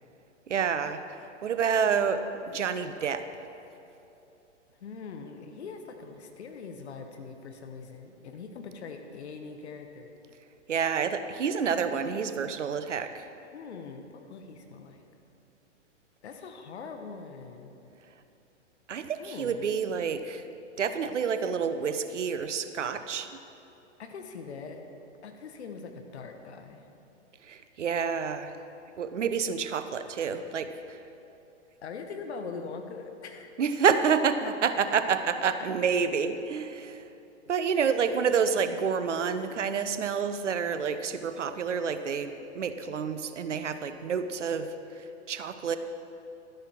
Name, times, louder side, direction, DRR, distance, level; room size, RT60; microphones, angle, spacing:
voice 1, 0.5-1.0 1.4-3.3 10.7-13.3 18.9-20.4 20.8-23.3 27.5-28.5 29.0-31.0 33.6-37.0 37.5-44.7 45.3-45.8, right 6 dB, 75° right, 10 dB, 0.8 m, -28 dB
voice 2, 4.8-10.1 11.6-12.4 13.5-15.0 16.2-17.7 19.2-19.7 24.0-24.8 25.2-26.8 31.8-33.5 34.4-34.5, left 5 dB, 65° left, 5 dB, 1.3 m, -42 dB
12.0 x 9.8 x 4.6 m, 2.9 s
figure-of-eight pair, 110°, 36 cm